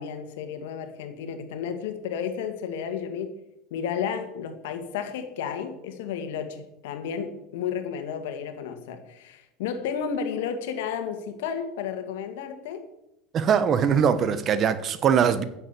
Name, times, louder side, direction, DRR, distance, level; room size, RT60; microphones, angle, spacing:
voice 1, 0.0-3.4 3.7-12.8, left 7 dB, 80° left, 1.9 m, -32 dB
voice 2, 13.3-15.4, right 7 dB, 40° right, 1.2 m, -21 dB
10.0 x 7.7 x 8.4 m
supercardioid pair, 120°, 0 cm